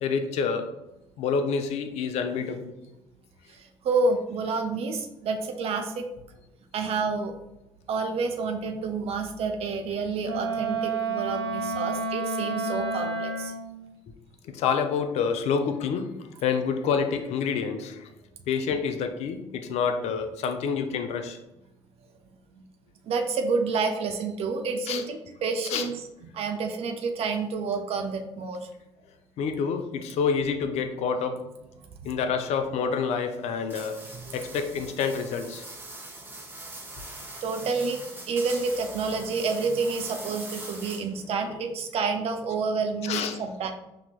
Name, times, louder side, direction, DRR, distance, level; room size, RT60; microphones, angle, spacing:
voice 1, 0.0-0.7 1.2-2.7 14.4-16.1 16.4-18.1 18.5-21.4 24.9-25.0 25.6-25.9 29.4-31.4 32.0-35.7 37.0-37.1 41.4-41.6 43.0-43.4, left 6 dB, 50° left, 7 dB, 0.5 m, -28 dB
voice 2, 3.5-6.1 6.7-7.3 7.9-13.5 22.5-22.6 23.0-25.9 26.3-28.7 34.1-34.2 37.4-43.7, right 4 dB, 45° right, 5 dB, 0.5 m, -29 dB
Wind instrument woodwind instrument, 10.2-13.7, right 3 dB, 80° right, 0.9 m, -30 dB
sound 1, 33.7-41.2, right 2 dB, 15° right, 1.2 m, -42 dB
5.6 x 2.8 x 2.4 m, 0.92 s
figure-of-eight pair, 50°, 14 cm